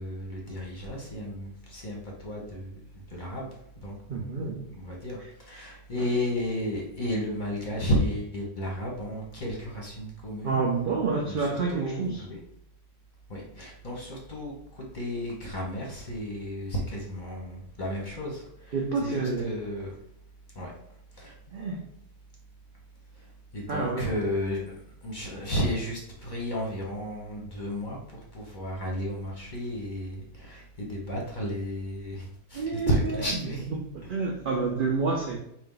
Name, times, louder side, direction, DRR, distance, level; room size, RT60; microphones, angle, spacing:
voice 1, 0.0-2.8 3.1-3.5 3.8-4.3 4.8-10.6 11.2-12.4 13.3-18.8 19.0-19.9 20.5-20.7 21.2-21.3 23.5-24.7 25.0-33.7, equal, 35° left, -2 dB, 1.0 m, -33 dB
voice 2, 4.1-4.6 5.9-6.0 10.4-12.2 18.7-19.5 21.5-21.8 23.7-24.1 32.5-33.2 33.9-35.4, right 4 dB, 65° right, 0 dB, 0.5 m, -28 dB
4.0 x 2.5 x 3.8 m, 0.74 s
omnidirectional pair, 1.5 m